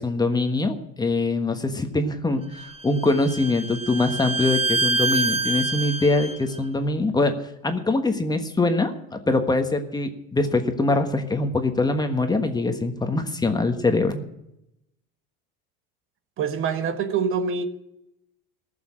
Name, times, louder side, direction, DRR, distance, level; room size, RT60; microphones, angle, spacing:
voice 1, 0.0-7.3 7.6-14.2, left 2 dB, 15° left, 6 dB, 1.3 m, -23 dB
Bowed string instrument, 2.6-6.4, right 3 dB, 20° right, 1.0 m, -26 dB
voice 2, 16.4-17.6, right 6 dB, 45° right, 9 dB, 1.4 m, -25 dB
15.5 x 7.1 x 10.0 m, 0.84 s
supercardioid pair, 120°, 30 cm